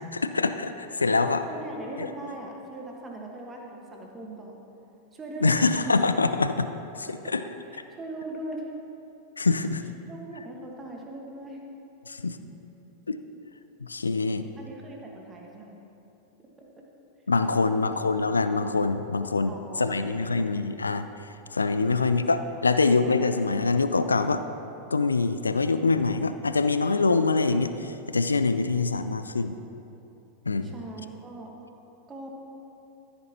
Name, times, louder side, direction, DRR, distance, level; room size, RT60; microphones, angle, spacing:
voice 1, 0.1-1.5 2.0-2.1 5.4-6.7 7.0-7.4 9.4-9.8 12.1-12.4 13.1-13.2 13.8-14.4 17.3-21.1 21.5-24.4 24.9-29.6 30.5-30.7, left 3 dB, 75° left, 10 dB, 0.4 m, -24 dB
voice 2, 1.5-4.6 5.1-5.9 7.2-7.3 7.7-8.7 10.1-11.6 14.5-15.8 16.6-16.8 17.5-18.0 19.5-20.8 21.8-22.2 30.6-31.5 32.1-32.3, right 2 dB, 20° right, 0 dB, 1.5 m, -40 dB
14.5 x 8.5 x 2.9 m, 3.0 s
figure-of-eight pair, 90°, 0 cm